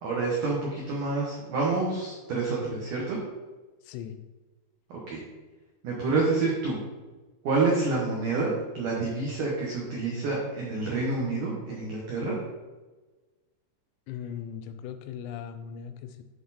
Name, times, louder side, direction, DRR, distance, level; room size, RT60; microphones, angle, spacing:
voice 1, 0.0-3.2 4.9-5.2 5.8-6.8 7.4-12.3, right 3 dB, 80° right, -4 dB, 1.8 m, -28 dB
voice 2, 3.9-4.2 14.1-16.2, left 8 dB, 90° left, 9 dB, 3.3 m, -38 dB
11.5 x 4.4 x 4.2 m, 1.2 s
omnidirectional pair, 5.7 m